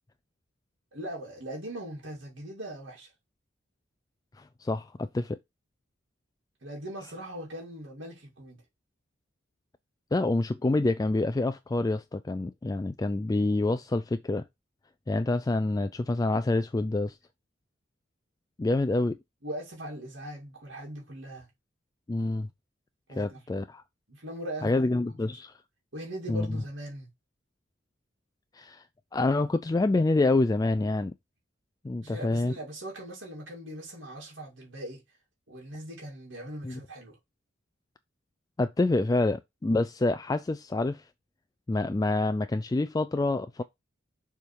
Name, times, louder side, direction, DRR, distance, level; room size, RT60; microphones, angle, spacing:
voice 1, 0.9-3.1 6.6-8.6 19.4-21.5 23.1-23.4 24.1-24.8 25.3-25.4 25.9-27.1 32.0-35.0 35.5-37.2, right 1 dB, 65° right, 2.5 m, -40 dB
voice 2, 4.4-5.4 10.1-14.4 15.1-17.2 18.6-19.2 22.1-22.5 23.2-23.8 24.6-25.5 26.3-26.6 28.5-28.8 29.1-31.1 31.8-32.5 36.6-36.8 38.6-41.0 41.7-43.6, left 2 dB, 20° left, 0.3 m, -27 dB
6.8 x 3.6 x 4.6 m
head